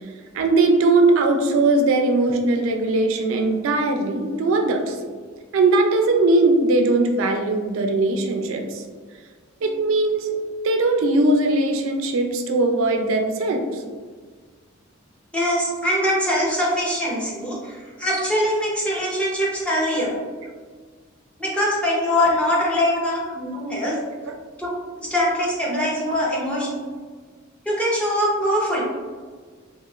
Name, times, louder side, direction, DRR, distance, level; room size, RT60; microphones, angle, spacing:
voice 1, 0.3-5.0 5.5-8.8 9.6-10.4 10.6-13.8 24.2-24.3, right 2 dB, 70° right, 4 dB, 0.3 m, -20 dB
voice 2, 15.3-20.2 21.4-24.0 24.6-24.7 25.0-26.7 27.7-28.8, equal, 5° left, -5 dB, 0.6 m, -22 dB
2.9 x 2.7 x 2.3 m, 1.5 s
head